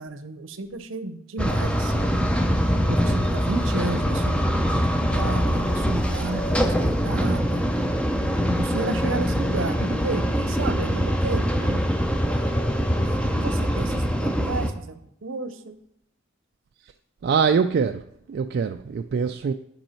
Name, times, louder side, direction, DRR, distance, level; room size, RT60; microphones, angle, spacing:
voice 1, 0.0-2.3 2.8-7.6 8.2-11.8 12.3-15.7, right 3 dB, 65° right, 0.7 m, -33 dB
sound 1, 1.4-14.7, equal, 5° left, 0.6 m, -23 dB
voice 2, 17.2-19.5, right 6 dB, 50° right, 0.3 m, -23 dB
10.5 x 5.5 x 4.3 m
head